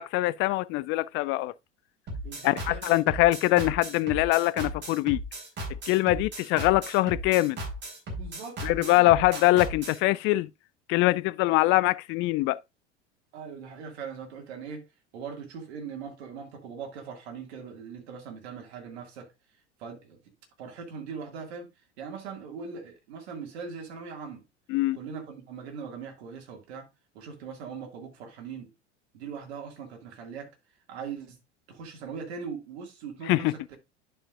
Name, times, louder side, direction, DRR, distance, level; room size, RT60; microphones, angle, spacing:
voice 1, 0.0-1.5 2.4-5.2 5.9-7.6 8.6-10.5 10.9-12.6 24.7-25.0 33.3-33.8, left 18 dB, 35° left, 0.4 m, -23 dB
sound 1, 2.1-10.0, right 2 dB, 30° right, 4.0 m, -36 dB
voice 2, 2.2-3.0 8.1-9.1 13.3-14.8 15.1-19.3 19.8-20.2 20.6-24.4 24.9-26.9 27.1-28.7 29.1-30.5 30.9-31.4 31.7-33.8, right 6 dB, 65° right, 2.1 m, -40 dB
11.0 x 5.6 x 2.4 m
figure-of-eight pair, 80°, 35 cm